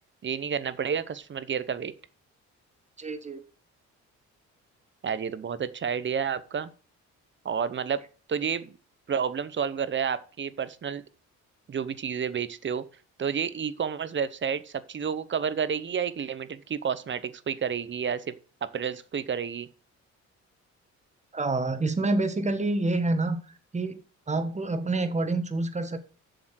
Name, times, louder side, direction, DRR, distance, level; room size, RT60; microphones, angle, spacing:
voice 1, 0.2-1.9 5.0-6.7 7.4-8.0 8.3-8.7 9.1-11.0 11.7-12.9 13.2-18.3 18.6-19.7, right 7 dB, 40° right, 0.9 m, -30 dB
voice 2, 3.0-3.4 21.3-23.4 23.7-24.0 24.3-26.0, right 2 dB, 25° right, 1.5 m, -27 dB
7.4 x 7.0 x 6.4 m
cardioid pair, 90°, 30 cm